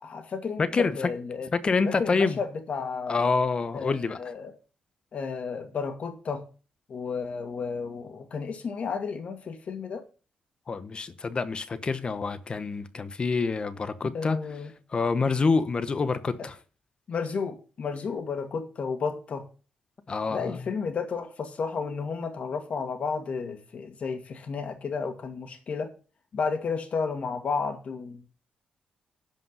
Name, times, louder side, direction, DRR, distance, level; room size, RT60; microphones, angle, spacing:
voice 1, 0.0-1.5 1.8-3.3 3.7-4.5 5.1-6.5 6.9-10.0 14.1-14.7 17.1-19.5 20.3-25.9 26.3-28.4, left 5 dB, 50° left, 2.2 m, -32 dB
voice 2, 0.6-0.9 1.5-2.4 3.1-4.2 10.7-14.4 14.9-16.6 20.1-20.6, left 4 dB, 35° left, 0.9 m, -27 dB
11.0 x 5.3 x 6.8 m
cardioid pair, 105°, 3 cm